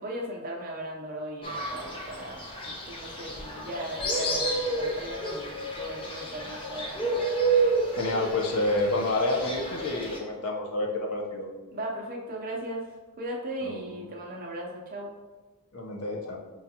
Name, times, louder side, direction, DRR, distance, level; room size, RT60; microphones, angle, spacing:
voice 1, 0.0-7.2 11.7-15.1, right 1 dB, 40° right, -1 dB, 0.6 m, -37 dB
Fowl, 1.4-10.2, right 2 dB, 25° left, 0.5 m, -30 dB
voice 2, 8.0-11.5 13.6-13.8 15.7-16.4, left 2 dB, 80° left, 0 dB, 0.7 m, -28 dB
5.5 x 2.4 x 2.8 m, 1.2 s
head